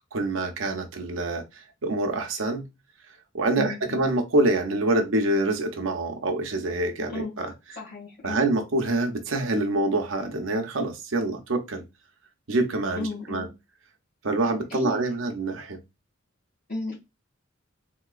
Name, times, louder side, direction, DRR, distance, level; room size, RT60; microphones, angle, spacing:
voice 1, 0.1-2.7 3.3-7.5 8.2-11.8 12.5-13.5 14.2-15.8, right 2 dB, 80° right, 0.7 m, -26 dB
voice 2, 3.6-4.0 7.1-7.3 7.8-8.4 13.0-13.5 14.7-15.0 16.7-17.0, left 3 dB, 50° left, 1.8 m, -33 dB
3.7 x 2.8 x 2.4 m
head